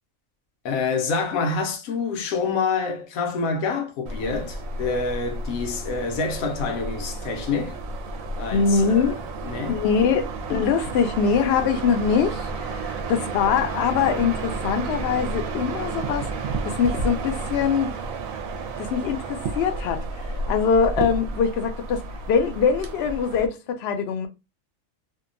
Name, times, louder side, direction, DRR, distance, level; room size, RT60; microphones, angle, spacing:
voice 1, 0.6-7.8 8.4-9.8, left 4 dB, 85° left, 1.1 m, -27 dB
sound 1, 4.1-23.5, right 3 dB, 75° right, 0.9 m, -31 dB
voice 2, 8.5-9.2 9.7-17.9 18.8-24.3, left 6 dB, 65° left, 0.7 m, -23 dB
2.7 x 2.1 x 2.5 m
omnidirectional pair, 1.4 m